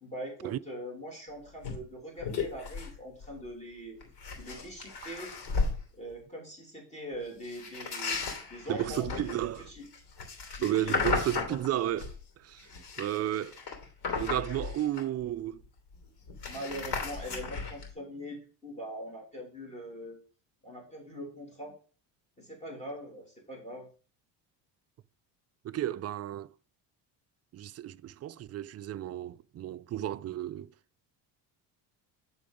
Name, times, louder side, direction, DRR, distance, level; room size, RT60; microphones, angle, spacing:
voice 1, 0.0-4.0 4.4-5.3 5.9-9.4 9.7-9.9 10.6-11.0 11.5-11.6 16.3-20.2 20.6-21.8 22.4-23.9, equal, 15° left, 2.8 m, -42 dB
sound 1, 1.6-1.8 2.2-3.0 3.2-3.5 4.0-5.8 7.4-12.2 12.6-15.3 15.6-15.7 15.9-17.9, left 4 dB, 65° left, 2.9 m, -35 dB
voice 2, 8.7-9.7 10.6-12.7 13.0-13.6 14.2-15.6 25.6-26.5 27.5-30.7, right 12 dB, 35° right, 0.4 m, -33 dB
10.5 x 3.9 x 5.1 m
cardioid pair, 100°, 43 cm